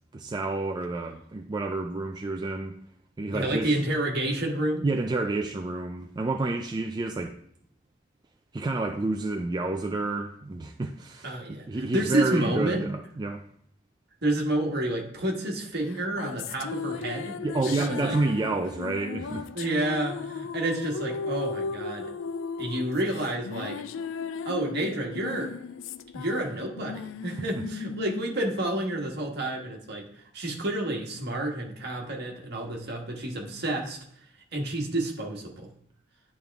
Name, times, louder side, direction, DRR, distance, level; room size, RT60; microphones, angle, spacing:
voice 1, 0.1-2.8 3.2-3.7 4.8-7.3 8.5-13.4 17.4-19.5 27.5-27.6, right 2 dB, 20° right, 0.3 m, -29 dB
voice 2, 3.3-4.8 11.2-12.9 14.2-17.3 17.6-18.2 19.5-22.1 22.6-23.8 24.4-25.5 26.1-30.0 30.3-34.0 34.5-35.7, right 1 dB, 55° right, 1.4 m, -29 dB
sound 1, 15.9-29.5, left 5 dB, 80° left, 0.3 m, -36 dB
10.5 x 3.6 x 3.5 m
head